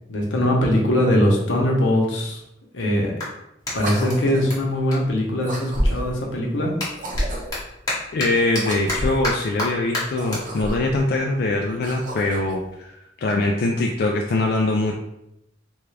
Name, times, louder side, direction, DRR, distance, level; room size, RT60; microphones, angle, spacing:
voice 1, 0.1-2.4 2.7-3.1 3.7-6.7, left 1 dB, 80° left, -1 dB, 0.8 m, -21 dB
Clapping, 3.1-5.9 6.2-12.8, left 2 dB, 20° left, 1.0 m, -33 dB
sound 1, 3.7-4.6 5.4-6.2 6.9-7.7 8.6-9.3 10.0-11.0 11.6-12.6, equal, 45° right, 0.6 m, -29 dB
voice 2, 8.1-14.9, left 2 dB, 55° left, 1 dB, 0.3 m, -23 dB
3.4 x 2.4 x 3.2 m, 0.83 s
head